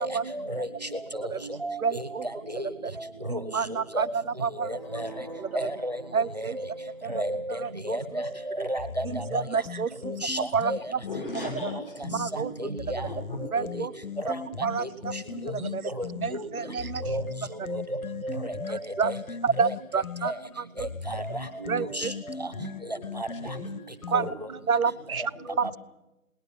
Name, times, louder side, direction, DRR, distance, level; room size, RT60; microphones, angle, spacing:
voice 1, 0.0-1.0 1.4-2.1 2.5-2.7 3.3-3.4 3.9-4.0 4.6-5.1 5.5-6.0 6.4-6.5 7.1-7.6 7.8-9.2 10.2-10.4 10.7-10.8 11.8-11.9 12.3-13.1 13.6-13.9 14.8-14.9 15.3-15.5 16.0-16.5 17.0-17.2 17.7-18.8 19.0-19.1 19.6-19.7 20.2-20.3 21.1-22.1 23.2-23.5 24.1-24.3, right 1 dB, 30° right, 13 dB, 1.2 m, -32 dB
voice 2, 1.8-2.3 2.8-2.9 3.3-5.0 5.3-5.7 6.1-6.6 7.0-7.2 7.5-8.2 8.6-8.7 9.0-11.0 11.6-11.7 12.2-12.5 13.5-13.9 14.3-14.4 14.6-15.9 16.2-17.2 18.7-19.1 19.4-20.9 21.7-22.1 24.1-24.3 24.7-25.3 25.6-25.8, right 6 dB, 85° right, 15 dB, 0.8 m, -30 dB
sound 1, 4.8-6.8, equal, 20° left, 1.3 m, -46 dB
sound 2, 8.8-12.3 12.8-16.3 16.8-24.6, left 7 dB, 80° left, 0.8 m, -39 dB
voice 3, 10.7-12.0 12.5-12.6 13.0-13.8 16.0-16.6 17.1-17.3 17.6-17.8 19.5-19.6 20.6-21.0 22.3-23.1 23.3-24.3 24.8-24.9 25.4-25.6, left 1 dB, 40° left, 3 dB, 5.9 m, -43 dB
19.5 x 19.5 x 7.2 m, 0.90 s
figure-of-eight pair, 175°, 42 cm